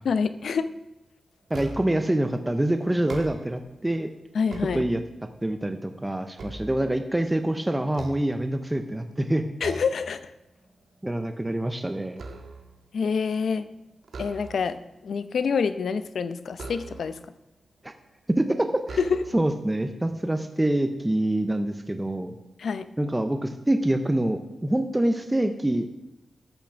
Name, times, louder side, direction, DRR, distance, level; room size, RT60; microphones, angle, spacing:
voice 1, 0.0-0.7 4.3-4.9 9.6-10.3 12.9-13.7 14.2-14.8 15.0-17.2 19.0-19.2 22.6-22.9, left 5 dB, 75° left, 12 dB, 0.6 m, -26 dB
voice 2, 1.5-4.1 4.7-5.0 5.4-9.4 11.0-12.2 17.8-17.9 18.3-19.0 19.3-22.3 23.0-25.9, right 1 dB, 10° right, 7 dB, 0.6 m, -25 dB
sound 1, 1.5-2.1 2.9-3.7 4.2-5.3 5.8-7.3 7.9-8.9 9.6-10.1 10.5-10.7 11.1-12.8 14.0-14.9 16.5-17.3 18.1-18.2 18.8-19.6, right 2 dB, 70° right, 1.5 m, -41 dB
13.0 x 6.0 x 7.3 m, 0.90 s
wide cardioid pair, 155°, 0 cm